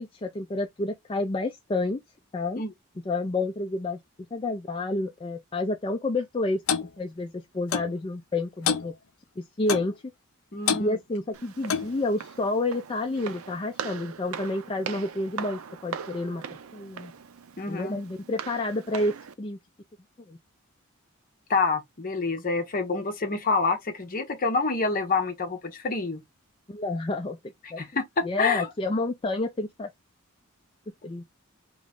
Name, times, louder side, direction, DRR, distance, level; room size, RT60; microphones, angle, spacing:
voice 1, 0.0-2.0 2.3-2.6 3.1-4.0 4.3-6.6 7.0-8.9 9.4-9.9 10.8-16.4 16.7-17.1 17.7-19.6 20.3-20.4 26.7-27.4 27.7-27.8 28.2-29.9 31.0-31.2, left 2 dB, 25° left, 0.4 m, -29 dB
Clock, 6.7-6.9 7.7-7.9 8.7-8.9 9.7-9.9 10.7-10.9 11.7-12.0, left 7 dB, 75° left, 0.5 m, -26 dB
voice 2, 10.5-11.0 17.6-18.0 21.5-26.2 27.8-28.7, left 4 dB, 45° left, 0.9 m, -27 dB
Walk footsteps, 11.3-19.3, right 6 dB, 90° right, 0.5 m, -40 dB
3.1 x 3.1 x 3.7 m
head